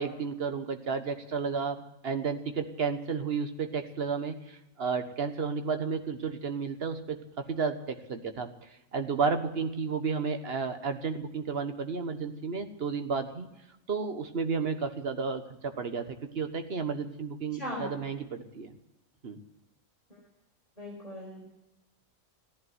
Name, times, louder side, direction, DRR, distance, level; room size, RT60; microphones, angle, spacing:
voice 1, 0.0-7.2 7.5-8.5 8.9-13.5 13.9-18.8 19.2-19.4, right 5 dB, 50° right, 7 dB, 1.5 m, -32 dB
voice 2, 17.5-17.9 20.8-21.5, equal, 30° left, -5 dB, 5.6 m, -38 dB
15.0 x 11.0 x 8.0 m, 0.93 s
omnidirectional pair, 1.4 m